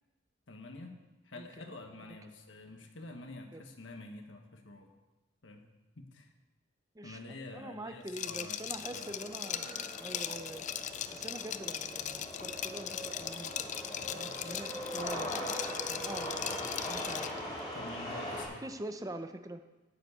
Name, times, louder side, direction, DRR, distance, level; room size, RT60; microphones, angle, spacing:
voice 1, 0.5-1.0 1.2-4.9 5.4-5.7 5.9-6.3 7.0-9.3 17.1-17.2 17.7-18.6, left 2 dB, 80° left, 4 dB, 1.3 m, -48 dB
voice 2, 7.5-10.7 11.1-13.7 14.1-15.3 15.9-16.3 16.9-17.3 18.6-19.6, right 1 dB, 20° right, 8 dB, 0.6 m, -44 dB
Liquid, 8.1-17.4, left 9 dB, 40° left, 0.5 m, -39 dB
sound 1, 8.8-18.4, equal, 25° left, 3.9 m, -41 dB
10.5 x 7.3 x 8.2 m, 1.1 s
head